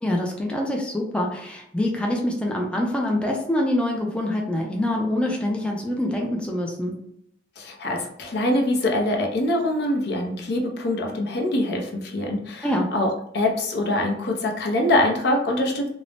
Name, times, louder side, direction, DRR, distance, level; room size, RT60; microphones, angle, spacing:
voice 1, 0.0-7.0 12.6-12.9, left 1 dB, 5° left, -1 dB, 0.4 m, -25 dB
voice 2, 7.6-12.7 12.9-15.9, left 1 dB, 65° left, 1 dB, 0.6 m, -24 dB
2.6 x 2.0 x 3.1 m, 0.75 s
head